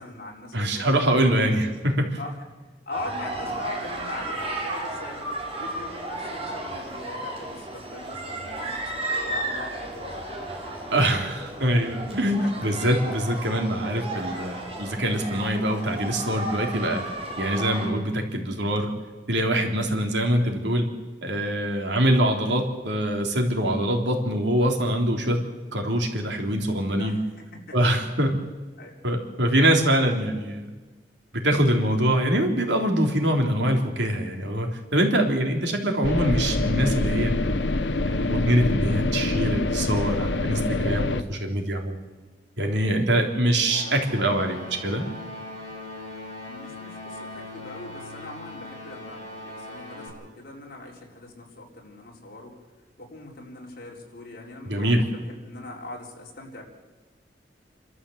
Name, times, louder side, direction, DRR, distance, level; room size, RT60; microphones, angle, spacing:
voice 1, 0.0-0.9 1.3-1.7 2.2-2.4 2.9-5.2 5.6-11.4 11.6-11.8 12.4-12.7 27.0-27.8 28.8-29.0 46.5-52.6 53.0-56.6, left 2 dB, 55° left, -1 dB, 4.4 m, -41 dB
voice 2, 0.5-2.2 10.9-17.1 17.4-18.9 19.3-20.9 21.2-25.4 25.7-27.2 27.7-28.3 29.0-30.6 31.3-37.5 38.0-42.0 42.6-45.0 54.6-55.0, right 1 dB, 75° right, 2 dB, 3.4 m, -24 dB
sound 1, 2.9-17.9, right 1 dB, 35° right, 5.7 m, -33 dB
sound 2, 36.0-41.2, left 2 dB, 90° left, 1.1 m, -25 dB
sound 3, 43.6-50.1, left 2 dB, 40° left, 7.3 m, -40 dB
28.5 x 13.0 x 8.0 m, 1.3 s
head